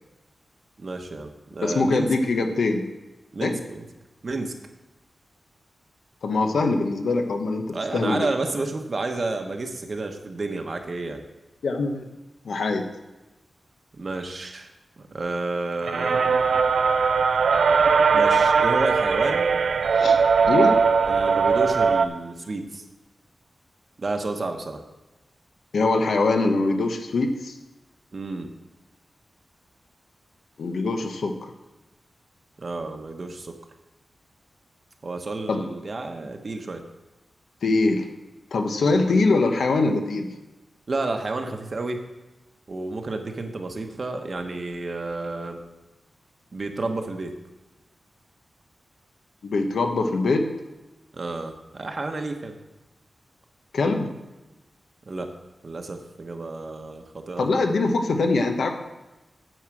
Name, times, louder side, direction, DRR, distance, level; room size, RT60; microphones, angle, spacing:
voice 1, 0.8-2.1 3.3-3.9 4.2-4.5 7.7-11.2 14.0-14.7 15.0-16.2 18.1-19.6 21.1-22.8 24.0-24.8 28.1-28.5 32.6-33.5 35.0-36.8 39.0-39.2 40.9-42.0 42.7-45.6 46.5-47.3 51.1-52.5 55.1-55.3 55.6-57.5, right 3 dB, 40° right, 5 dB, 1.0 m, -30 dB
voice 2, 1.6-2.9 3.4-3.5 6.2-8.3 11.6-12.1 12.4-12.8 19.9-20.7 25.7-27.5 30.6-31.4 35.5-35.6 37.6-38.1 38.5-40.3 49.4-50.5 53.7-54.1 57.4-58.7, left 3 dB, 80° left, 5 dB, 1.1 m, -23 dB
sound 1, 15.8-22.0, right 5 dB, 80° right, 0.5 m, -20 dB
9.3 x 4.7 x 7.7 m, 1.1 s
wide cardioid pair, 145°, 0 cm